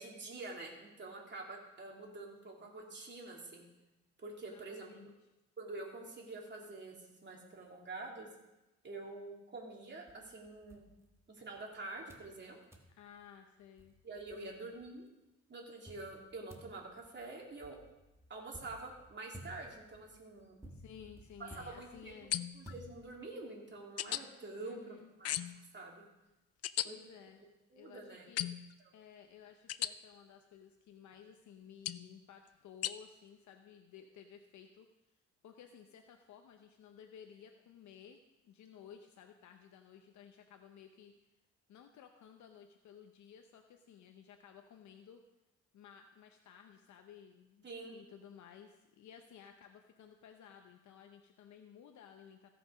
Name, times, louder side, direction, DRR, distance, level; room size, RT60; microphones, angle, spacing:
voice 1, 0.0-3.6 4.2-5.1 5.6-8.3 8.8-10.8 11.3-12.6 14.0-15.1 15.5-17.8 18.3-20.6 21.6-22.3 22.5-25.4 25.7-26.0 26.8-27.0 27.7-28.3 47.6-48.0, right 2 dB, 35° right, -1 dB, 3.0 m, -47 dB
voice 2, 4.5-5.1 13.0-14.0 14.4-14.7 20.6-22.3 24.6-25.1 26.8-27.4 27.7-28.5 28.9-34.9 35.4-38.2 38.4-41.1 41.7-45.2 45.7-47.7 47.9-52.5, left 8 dB, 70° left, 5 dB, 0.8 m, -56 dB
sound 1, 10.1-11.6 12.1-12.4 12.7-13.0 13.5-13.6 13.8-14.9 15.9-23.4, equal, 10° right, 1.6 m, -56 dB
sound 2, 22.3-22.7 24.0-24.2 25.2-25.6 26.6-26.9 28.4-28.7 29.7-29.9 31.9-32.1 32.8-32.9, left 12 dB, 55° left, 0.5 m, -36 dB
16.0 x 6.0 x 5.2 m, 0.98 s
cardioid pair, 90°, 30 cm